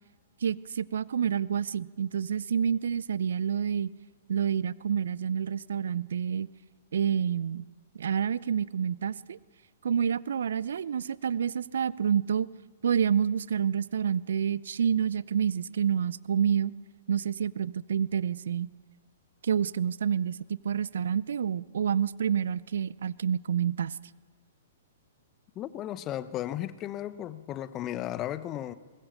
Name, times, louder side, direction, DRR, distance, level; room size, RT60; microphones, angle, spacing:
voice 1, 0.4-3.9 4.3-6.5 6.9-7.7 7.9-9.4 9.8-12.5 12.8-16.7 17.1-18.7 19.4-23.9, right 8 dB, 65° right, 0.5 m, -28 dB
voice 2, 25.6-28.7, left 12 dB, 30° left, 0.9 m, -35 dB
22.5 x 20.5 x 6.6 m
figure-of-eight pair, 115°, 0 cm